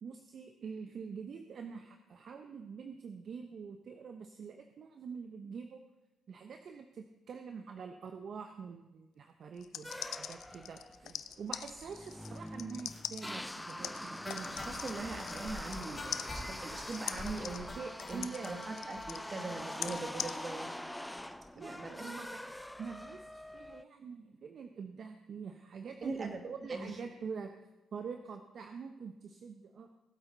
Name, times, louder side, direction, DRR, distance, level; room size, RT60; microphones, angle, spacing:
voice 1, 0.0-5.8 6.3-14.7 17.8-18.5 21.6-22.5 22.8-27.5 27.9-29.9, right 5 dB, 60° right, 6 dB, 0.8 m, -45 dB
sound 1, 9.6-15.9 16.1-20.3, left 10 dB, 70° left, 0.5 m, -42 dB
sound 2, 9.8-23.8, left 1 dB, 5° left, 0.5 m, -44 dB
sound 3, 14.2-18.5 19.0-19.1 19.4-19.5 19.7-19.8 20.2-20.3, left 1 dB, 25° left, 4.0 m, -45 dB
voice 2, 14.6-17.7 18.1-20.7 21.6-22.1 26.0-26.4 26.7-26.9, right 3 dB, 40° right, 4 dB, 2.2 m, -41 dB
18.5 x 8.1 x 3.9 m, 1.1 s
supercardioid pair, 55°, 0 cm